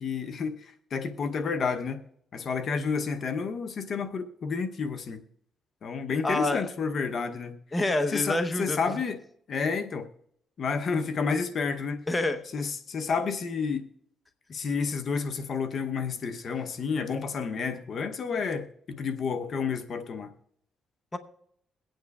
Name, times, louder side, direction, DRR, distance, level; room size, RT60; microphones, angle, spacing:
voice 1, 0.0-2.0 2.3-5.2 5.8-7.6 8.1-9.2 9.5-10.1 10.6-12.0 12.5-13.8 14.5-20.3, left 5 dB, 55° left, 7 dB, 0.8 m, -30 dB
voice 2, 6.2-6.7 7.7-8.8 12.1-12.4 21.1-21.2, left 2 dB, 20° left, 8 dB, 0.9 m, -27 dB
22.5 x 9.0 x 2.4 m, 0.73 s
cardioid pair, 90°, 0 cm